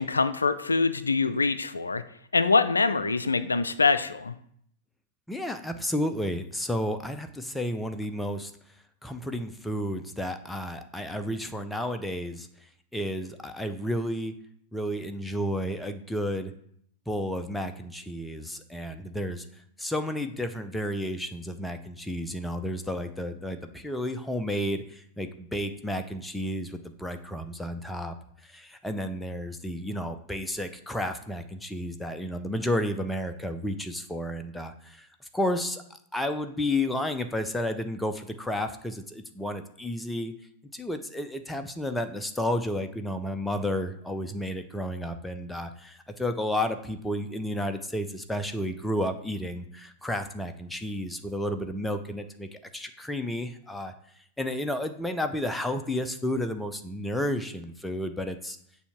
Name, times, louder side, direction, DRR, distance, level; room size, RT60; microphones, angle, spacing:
voice 1, 0.0-2.0 2.3-4.3, left 4 dB, 80° left, 13 dB, 0.3 m, -24 dB
voice 2, 5.3-8.5 9.0-12.5 12.9-14.3 14.7-16.5 17.1-19.4 19.8-28.1 28.5-35.1 35.3-35.8 36.1-40.3 40.7-53.9 54.4-58.6, left 1 dB, 5° left, 7 dB, 0.5 m, -32 dB
6.8 x 2.8 x 5.8 m, 0.68 s
figure-of-eight pair, 90°, 0 cm